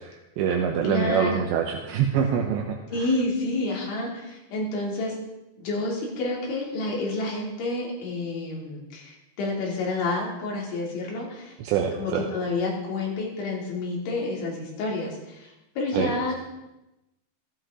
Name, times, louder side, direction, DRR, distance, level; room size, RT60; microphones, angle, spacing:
voice 1, 0.0-3.1 11.6-12.2 15.9-16.1, right 7 dB, 80° right, 1 dB, 3.2 m, -25 dB
voice 2, 0.8-1.5 2.9-5.2 5.6-16.3, left 2 dB, 90° left, -2 dB, 5.3 m, -29 dB
15.5 x 15.0 x 3.8 m, 0.95 s
omnidirectional pair, 5.2 m